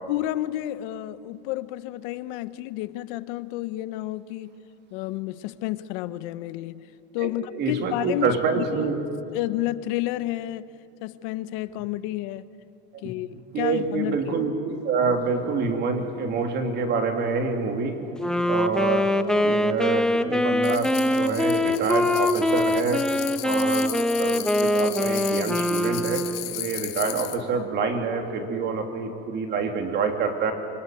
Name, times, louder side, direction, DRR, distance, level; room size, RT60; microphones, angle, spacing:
voice 1, 0.1-4.6 4.9-8.9 9.3-10.7 11.0-12.5 13.0-14.3, left 15 dB, 60° left, 1.1 m, -31 dB
voice 2, 7.2-9.0 12.9-13.0 13.5-18.0 18.5-19.1 19.4-23.0 23.4-23.9 24.1-26.2 26.5-30.5, right 5 dB, 35° right, 3.3 m, -27 dB
Wind instrument woodwind instrument, 18.2-26.5, left 1 dB, ahead, 0.7 m, -23 dB
sound 1, 20.6-27.4, left 17 dB, 80° left, 1.9 m, -36 dB
26.5 x 24.0 x 9.3 m
supercardioid pair, 145°, 30 cm